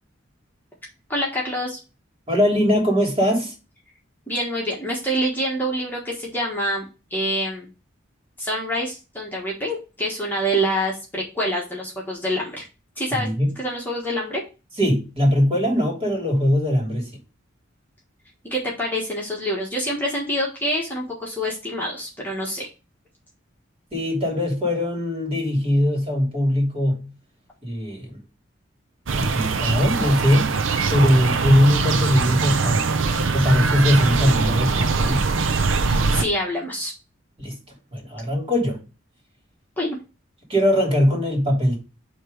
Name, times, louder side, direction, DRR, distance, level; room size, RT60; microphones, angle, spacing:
voice 1, 1.1-1.8 4.3-7.7 8.4-12.6 13.0-13.3 13.6-14.4 18.4-22.7 35.8-36.9 39.8-40.0, equal, 10° left, 1.5 m, -26 dB
voice 2, 2.3-3.5 13.1-13.5 14.8-17.1 23.9-27.1 27.6-28.2 29.2-30.6 30.9-32.9 33.3-35.3 37.4-37.6 37.9-38.8 40.5-41.8, equal, 30° right, 3.0 m, -21 dB
sound 1, 29.1-36.2, right 4 dB, 75° right, 0.7 m, -22 dB
7.8 x 3.1 x 5.2 m
head